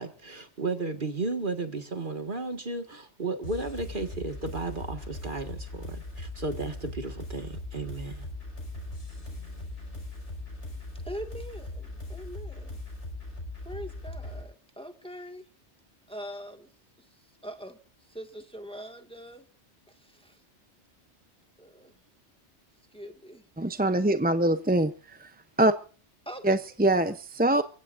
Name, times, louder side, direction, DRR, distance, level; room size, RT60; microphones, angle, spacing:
voice 1, 0.0-8.3, right 3 dB, 45° right, 7 dB, 1.9 m, -34 dB
sound 1, 3.4-14.4, left 2 dB, 75° left, 5.7 m, -39 dB
voice 2, 11.0-12.8 13.6-15.4 16.1-16.7 17.4-17.8 18.1-19.5 19.9-20.4 21.6-21.9 22.9-23.4 26.3-26.6, equal, 5° left, 5 dB, 1.8 m, -42 dB
voice 3, 23.6-24.9 25.2-25.3 25.6-25.7 26.4-27.6, right 1 dB, 10° right, 10 dB, 0.5 m, -23 dB
29.0 x 16.0 x 2.6 m, 0.38 s
omnidirectional pair, 1.2 m